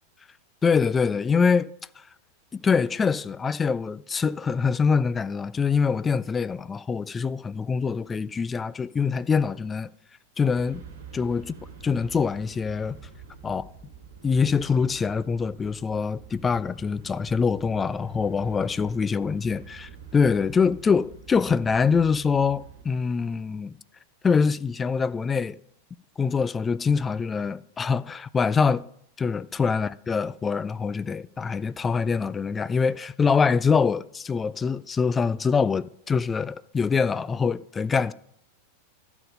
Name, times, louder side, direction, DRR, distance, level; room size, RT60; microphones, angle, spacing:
voice 1, 0.6-1.7 2.5-9.9 10.4-10.8 11.1-11.5 11.8-13.0 13.4-13.6 14.2-23.7 24.2-25.6 26.2-28.8 29.2-38.1, left 5 dB, 15° left, 0.3 m, -24 dB
sound 1, 10.5-22.8, right 5 dB, 55° right, 1.5 m, -46 dB
12.5 x 5.2 x 5.2 m
figure-of-eight pair, 90°, 0 cm